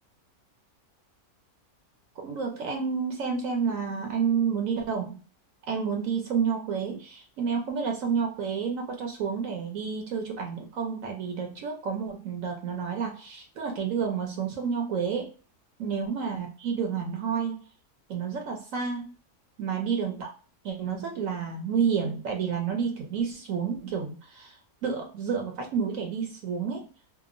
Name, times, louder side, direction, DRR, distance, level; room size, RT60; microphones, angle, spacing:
voice 1, 2.2-5.2 5.7-15.3 15.8-17.6 18.1-19.1 19.6-20.3 20.6-26.9, right 6 dB, 70° right, 3 dB, 0.9 m, -30 dB
2.8 x 2.1 x 2.4 m, 0.37 s
omnidirectional pair, 1.6 m